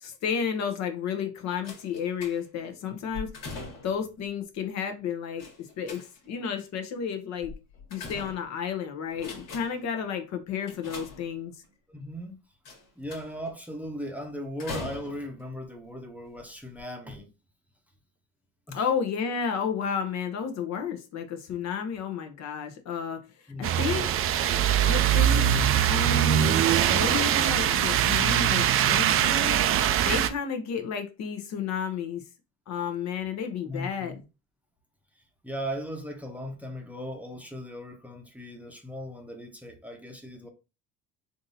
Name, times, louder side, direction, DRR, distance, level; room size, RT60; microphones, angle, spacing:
voice 1, 0.0-3.4 3.8-7.5 7.9-11.5 18.7-23.3 23.6-24.1 24.9-25.5 25.8-26.6 26.9-29.6 30.0-32.2 32.7-34.2, left 7 dB, 55° left, 0.8 m, -32 dB
sound 1, 1.6-2.7 3.1-4.1 5.4-6.4 7.4-8.7 9.1-9.9 10.7-11.7 12.7-13.5 14.6-15.4 16.2-16.4 16.7-16.8, left 3 dB, 75° left, 1.6 m, -41 dB
voice 2, 11.9-12.3 13.0-17.3 18.7-18.8 23.5-24.1 33.6-34.2 35.4-40.5, equal, 5° right, 0.7 m, -38 dB
sound 2, 23.6-30.3, right 10 dB, 40° right, 0.4 m, -22 dB
3.6 x 2.6 x 2.7 m
supercardioid pair, 90°, 34 cm